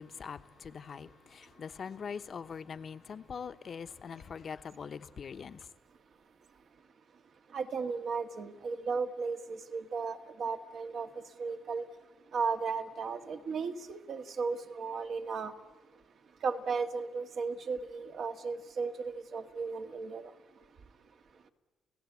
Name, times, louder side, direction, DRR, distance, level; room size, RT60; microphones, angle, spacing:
voice 1, 0.0-5.7, left 6 dB, 50° left, 1.0 m, -43 dB
voice 2, 7.5-11.1 11.4-11.8 12.3-15.5 16.4-20.3, right 5 dB, 60° right, 1.8 m, -35 dB
29.5 x 17.0 x 8.4 m
cardioid pair, 90°, 0 cm